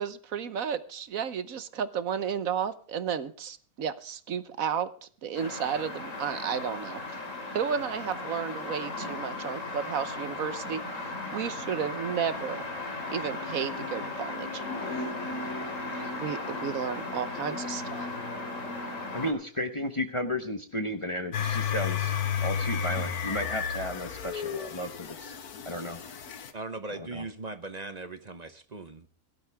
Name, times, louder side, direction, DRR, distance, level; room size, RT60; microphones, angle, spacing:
voice 1, 0.0-7.2 7.5-12.6 13.1-14.6 14.9-15.0 15.9-18.1, right 7 dB, 65° right, 13 dB, 1.3 m, -33 dB
sound 1, 5.4-19.3, left 2 dB, 60° left, 3.0 m, -36 dB
voice 2, 19.1-22.1 22.4-25.3 25.6-26.0 27.1-27.2, left 1 dB, 25° left, 6 dB, 1.0 m, -33 dB
sound 2, 21.3-26.5, left 7 dB, 80° left, 1.6 m, -32 dB
voice 3, 26.5-29.1, right 3 dB, 35° right, 10 dB, 0.9 m, -39 dB
17.5 x 12.0 x 3.4 m, 0.43 s
omnidirectional pair, 1.6 m